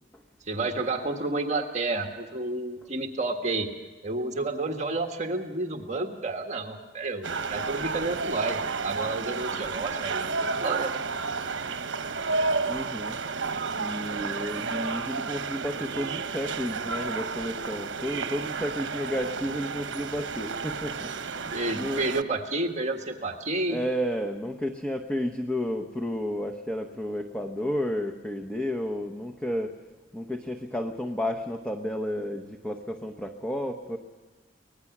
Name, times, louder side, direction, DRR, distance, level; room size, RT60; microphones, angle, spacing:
voice 1, 0.4-3.7 4.0-11.0 21.5-23.8, right 2 dB, 40° right, 3 dB, 1.7 m, -30 dB
sound 1, 7.2-22.2, right 4 dB, 80° right, 1.0 m, -31 dB
voice 2, 12.7-13.2 13.8-22.0 23.7-29.7 30.1-34.0, equal, 5° left, 2 dB, 1.0 m, -32 dB
24.5 x 19.5 x 6.1 m, 1.3 s
head